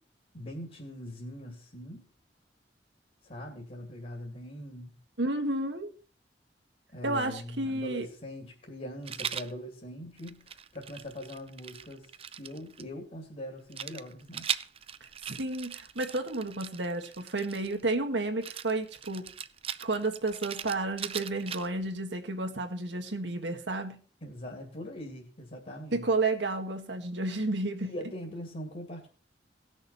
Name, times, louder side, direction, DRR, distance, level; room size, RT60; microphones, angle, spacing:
voice 1, 0.3-2.1 3.2-4.9 6.9-12.1 12.4-14.5 24.2-26.0 27.9-29.1, equal, 45° left, 2.4 m, -42 dB
voice 2, 5.2-5.9 7.0-8.1 15.3-19.3 19.8-24.0 25.9-27.9, right 2 dB, 85° right, 1.8 m, -31 dB
Rattle, 9.1-9.5 10.2-12.8 13.7-17.8 18.4-21.9, right 8 dB, 35° right, 0.5 m, -39 dB
18.0 x 6.4 x 4.1 m
head